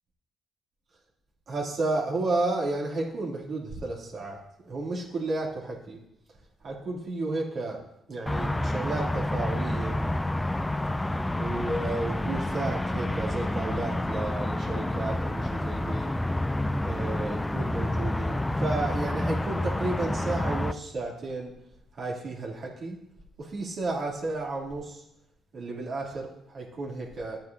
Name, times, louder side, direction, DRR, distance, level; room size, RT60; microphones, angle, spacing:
voice 1, 1.5-4.4 4.6-6.0 6.6-7.8 8.1-10.0 11.3-16.1 16.8-21.5 21.9-23.0 23.4-25.0 25.5-27.4, right 2 dB, 55° right, -2 dB, 2.6 m, -32 dB
sound 1, 8.3-20.7, left 1 dB, 10° left, 0.4 m, -29 dB
13.0 x 9.0 x 2.7 m, 0.79 s
cardioid pair, 90°, 0 cm